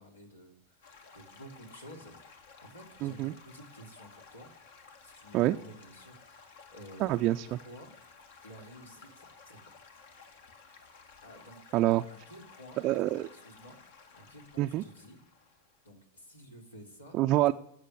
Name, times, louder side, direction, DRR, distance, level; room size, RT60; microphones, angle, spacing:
voice 1, 0.0-2.1 2.5-4.5 5.0-7.2 7.6-8.0 8.4-9.7 11.2-11.6 12.1-15.2 15.8-17.2, equal, 75° left, 1 dB, 3.5 m, -52 dB
Stream / Gurgling / Trickle dribble, 0.8-15.9, left 5 dB, 55° left, 2.0 m, -55 dB
voice 2, 3.0-3.3 5.3-5.6 7.0-7.6 11.7-12.0 12.8-13.3 14.6-14.8 17.1-17.5, right 15 dB, 40° right, 5 dB, 0.5 m, -26 dB
15.0 x 8.2 x 9.8 m, 0.75 s
figure-of-eight pair, 90°, 0 cm